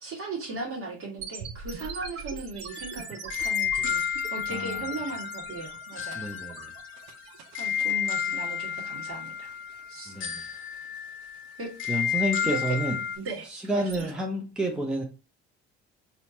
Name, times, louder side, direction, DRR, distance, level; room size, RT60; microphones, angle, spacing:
voice 1, 0.0-4.0 4.3-6.3 7.6-9.5 9.9-10.1 11.6-11.7 12.4-12.8 13.1-14.1, right 3 dB, 45° right, -1 dB, 1.6 m, -37 dB
sound 1, 1.2-14.1, right 5 dB, 75° right, 0.7 m, -44 dB
sound 2, 2.7-13.2, left 8 dB, 40° left, 0.9 m, -32 dB
voice 2, 4.5-4.9 6.1-6.7 10.1-10.4 11.9-13.0 13.5-15.0, right 1 dB, 5° right, 0 dB, 0.8 m, -30 dB
4.3 x 2.7 x 2.8 m, 0.33 s
hypercardioid pair, 60°, 32 cm